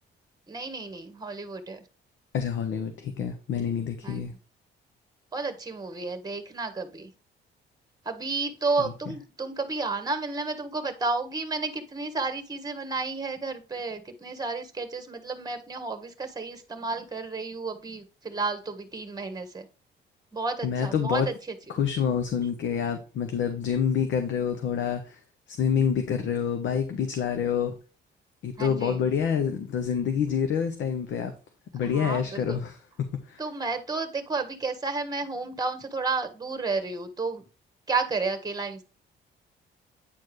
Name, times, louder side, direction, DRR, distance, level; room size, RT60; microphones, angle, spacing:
voice 1, 0.5-1.8 4.0-4.4 5.3-7.1 8.0-19.7 20.3-21.3 28.6-29.0 31.8-32.6 33.4-37.4 37.9-38.8, right 3 dB, 20° right, 9 dB, 1.4 m, -32 dB
voice 2, 2.3-4.3 8.8-8.9 20.6-21.3 21.7-25.2 25.5-27.7 28.4-31.3 31.7-32.8 33.3-33.4, left 7 dB, 70° left, 6 dB, 1.0 m, -27 dB
9.2 x 4.5 x 3.2 m, 0.34 s
cardioid pair, 90°, 20 cm